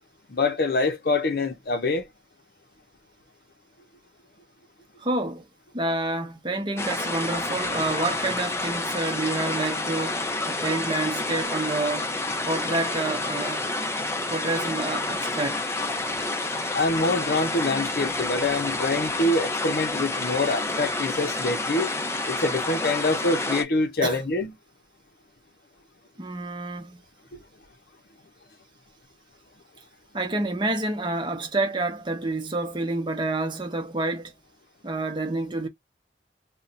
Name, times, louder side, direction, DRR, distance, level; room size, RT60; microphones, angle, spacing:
voice 1, 0.3-2.1 16.7-21.9 22.3-24.5 27.3-27.4, left 2 dB, 60° left, 0.7 m, -25 dB
voice 2, 5.0-5.4 5.7-12.1 12.5-13.7 14.3-15.6 24.0-24.2 26.2-27.0 30.1-34.3 34.8-35.7, right 2 dB, 25° right, 0.7 m, -28 dB
sound 1, 6.8-23.6, left 2 dB, 15° left, 0.5 m, -29 dB
2.7 x 2.2 x 3.9 m
head